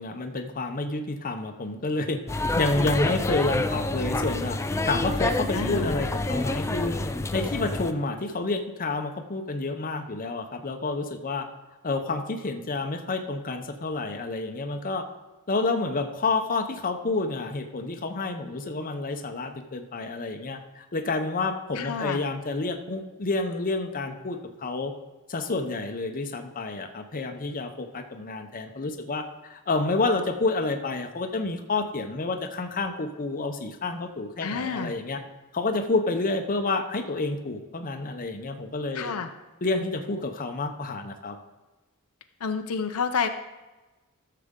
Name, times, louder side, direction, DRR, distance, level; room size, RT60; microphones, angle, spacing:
voice 1, 0.0-4.6 4.8-7.0 7.3-11.5 11.8-15.0 15.5-24.9 25.3-35.2 35.5-39.1 39.6-41.4, left 3 dB, 40° left, 5 dB, 0.8 m, -29 dB
sound 1, 2.3-7.9, left 2 dB, 15° left, 0.4 m, -28 dB
voice 2, 5.5-6.0 21.7-22.2 34.4-34.9 38.9-39.3 42.4-43.3, left 5 dB, 75° left, 7 dB, 0.6 m, -29 dB
13.5 x 6.7 x 3.7 m, 1.1 s
head